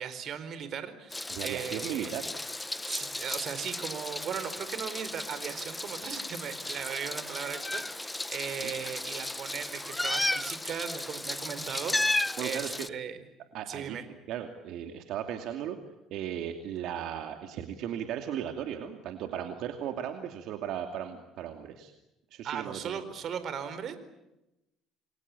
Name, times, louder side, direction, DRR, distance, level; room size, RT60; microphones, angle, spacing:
voice 1, 0.0-2.1 2.9-13.2 13.7-14.0 22.4-24.0, right 8 dB, 50° right, 12 dB, 4.3 m, -37 dB
Meow, 1.1-12.9, left 2 dB, 10° left, 0.9 m, -34 dB
voice 2, 1.3-2.3 8.6-8.7 12.4-12.9 13.5-14.0 14.3-15.8 16.1-21.9 22.3-23.0, right 10 dB, 70° right, 6 dB, 2.6 m, -36 dB
29.5 x 23.5 x 8.4 m, 0.94 s
cardioid pair, 120°, 0 cm